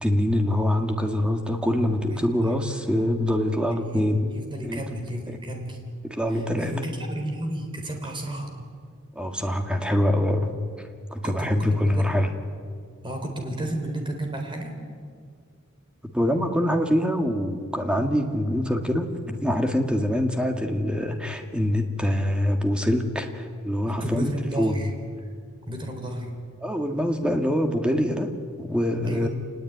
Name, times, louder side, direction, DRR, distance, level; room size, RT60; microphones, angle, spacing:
voice 1, 0.0-4.4 4.6-4.8 5.3-5.4 6.0-6.7 9.2-10.6 11.1-12.3 16.0-24.3 24.6-24.8 26.6-29.3, left 1 dB, 5° right, 4 dB, 1.9 m, -24 dB
voice 2, 2.1-2.7 3.8-5.8 6.3-8.5 11.2-12.1 13.0-14.8 23.9-24.9 25.7-26.3 29.0-29.3, right 1 dB, 25° right, 3 dB, 3.9 m, -33 dB
28.0 x 20.0 x 9.4 m, 2.1 s
head